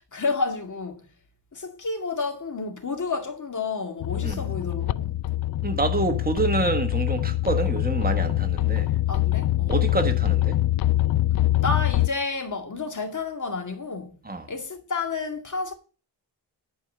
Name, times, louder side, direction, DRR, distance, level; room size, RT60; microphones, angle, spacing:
voice 1, 0.1-1.1 1.5-5.2 9.1-9.8 11.6-14.2 14.5-15.7, left 4 dB, 45° left, 2.1 m, -30 dB
sound 1, 4.0-12.1, left 15 dB, 60° left, 0.5 m, -24 dB
voice 2, 5.6-8.9 9.7-10.6 14.2-14.5, right 3 dB, 20° right, 1.5 m, -27 dB
11.0 x 4.7 x 6.7 m
wide cardioid pair, 95°, 42 cm